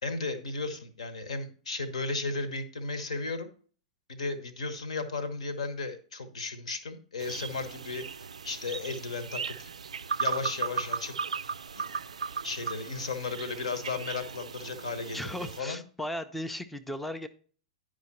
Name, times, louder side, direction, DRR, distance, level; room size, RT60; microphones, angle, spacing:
voice 1, 0.0-3.5 4.1-9.7 10.2-11.2 11.7-12.0 12.4-15.8, left 3 dB, 65° left, 11 dB, 1.1 m, -35 dB
sound 1, 7.2-15.6, right 5 dB, 70° right, 0.3 m, -37 dB
voice 2, 15.1-17.3, left 1 dB, 5° left, 9 dB, 0.5 m, -36 dB
10.0 x 5.0 x 4.1 m, 0.43 s
figure-of-eight pair, 100°, 4 cm